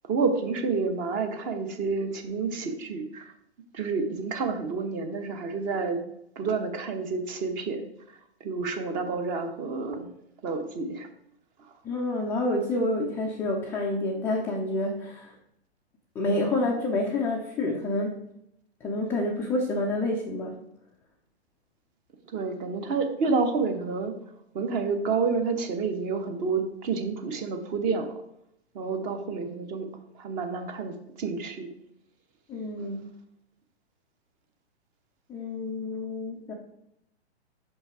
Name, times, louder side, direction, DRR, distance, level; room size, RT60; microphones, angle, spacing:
voice 1, 0.1-3.3 3.7-6.0 6.4-7.9 8.4-10.1 10.4-11.1 22.3-24.1 24.5-28.2 28.7-29.9 30.1-31.7 32.8-32.9, right 4 dB, 25° right, 7 dB, 0.9 m, -29 dB
voice 2, 11.8-15.3 16.2-18.2 18.8-20.6 32.5-33.0 35.3-36.5, left 2 dB, 5° left, -2 dB, 0.4 m, -28 dB
5.8 x 5.5 x 4.7 m, 0.78 s
figure-of-eight pair, 115°, 33 cm